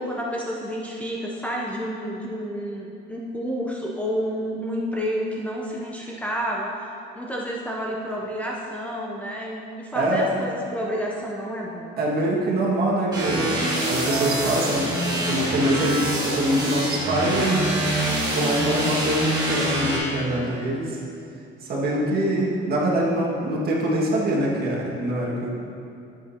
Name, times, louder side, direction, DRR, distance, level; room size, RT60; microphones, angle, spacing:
voice 1, 0.0-12.0, equal, 5° left, -3 dB, 0.6 m, -30 dB
voice 2, 9.9-10.3 12.0-17.8 18.3-21.0 21.6-25.5, right 1 dB, 45° right, -3 dB, 1.8 m, -24 dB
sound 1, 13.1-20.0, right 1 dB, 20° right, 2.0 m, -25 dB
12.0 x 7.8 x 2.8 m, 2.6 s
cardioid pair, 145°, 21 cm